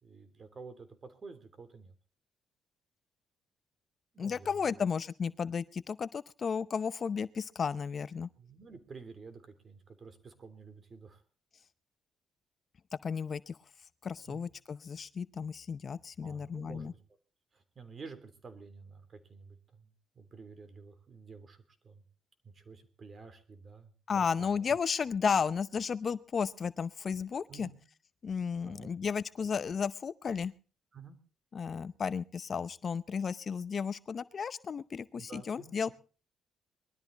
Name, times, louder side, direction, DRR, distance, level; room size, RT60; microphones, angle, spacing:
voice 1, 0.0-1.9 4.1-4.8 8.4-11.2 14.3-14.5 16.2-17.0 17.5-19.9 20.1-22.0 22.5-24.7 27.5-27.8 28.6-28.9 30.9-31.2 35.2-35.9, right 4 dB, 40° right, 10 dB, 3.3 m, -50 dB
voice 2, 4.2-8.3 13.0-13.6 14.0-16.9 24.1-27.7 28.2-30.5 31.5-35.9, left 6 dB, 45° left, 15 dB, 0.7 m, -33 dB
21.5 x 13.0 x 4.1 m, 0.37 s
cardioid pair, 90°, 0 cm